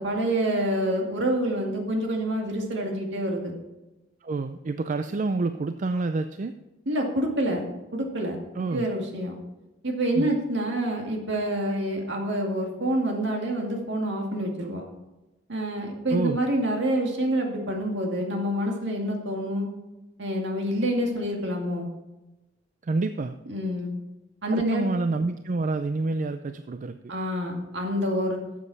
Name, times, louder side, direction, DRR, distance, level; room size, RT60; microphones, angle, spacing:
voice 1, 0.0-3.5 6.9-7.6 7.9-9.4 9.8-14.8 15.5-19.7 20.2-21.9 23.5-23.9 24.4-24.8 27.1-28.4, right 1 dB, 65° right, 1 dB, 2.3 m, -27 dB
voice 2, 4.2-6.5 8.5-8.8 10.1-10.4 16.1-16.4 22.8-23.4 24.5-27.1, right 3 dB, 40° right, 9 dB, 0.4 m, -28 dB
12.0 x 7.6 x 4.1 m, 1.0 s
head